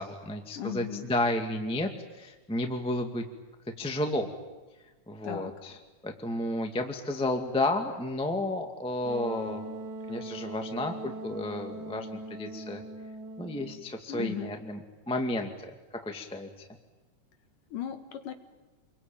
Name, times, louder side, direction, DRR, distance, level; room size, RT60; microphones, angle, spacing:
voice 1, 0.0-1.9 2.2-3.2 3.8-4.3 5.1-5.8 6.0-9.7 10.1-12.1 12.4-12.8 13.4-15.7 16.0-16.7, left 1 dB, ahead, 4 dB, 1.4 m, -32 dB
voice 2, 0.6-1.1 5.2-5.5 14.1-14.6 17.7-18.3, left 9 dB, 80° left, 7 dB, 3.4 m, -36 dB
Wind instrument woodwind instrument, 9.0-13.9, right 2 dB, 75° right, 3.1 m, -40 dB
28.0 x 23.0 x 9.1 m, 1.2 s
omnidirectional pair, 3.7 m